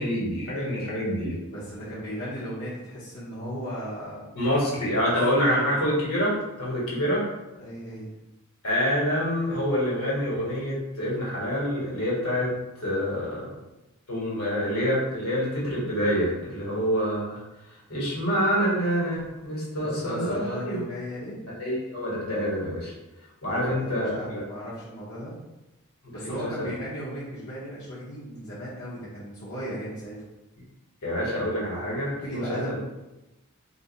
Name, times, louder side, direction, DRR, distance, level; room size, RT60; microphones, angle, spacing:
voice 1, 0.0-1.4 4.3-7.2 8.6-13.4 14.1-17.4 17.9-20.8 21.6-22.9 23.4-24.4 26.0-26.5 31.0-32.8, equal, 75° left, -6 dB, 1.4 m, -27 dB
voice 2, 1.5-4.3 5.0-5.8 7.6-8.1 19.8-21.4 23.6-25.3 26.1-30.2 32.1-32.8, equal, 55° left, -10 dB, 0.9 m, -36 dB
2.6 x 2.5 x 4.0 m, 0.99 s
head